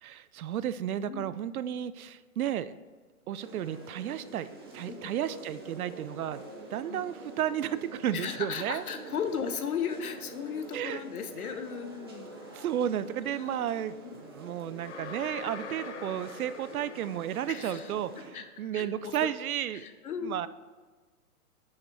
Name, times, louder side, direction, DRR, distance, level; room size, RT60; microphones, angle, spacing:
voice 1, 0.0-2.8 3.3-4.5 4.7-6.4 6.7-8.8 10.7-11.0 12.5-19.9 20.2-20.5, right 10 dB, 70° right, 15 dB, 0.5 m, -33 dB
sound 1, 3.4-18.3, right 2 dB, 20° right, 0.5 m, -46 dB
voice 2, 8.1-12.6 13.2-13.6 14.0-14.2 17.5-19.3 19.7-20.4, left 7 dB, 70° left, 8 dB, 1.0 m, -36 dB
sound 2, 14.8-17.9, left 6 dB, 50° left, 0.7 m, -44 dB
6.5 x 5.8 x 4.5 m, 1.4 s
hypercardioid pair, 160°, 45 cm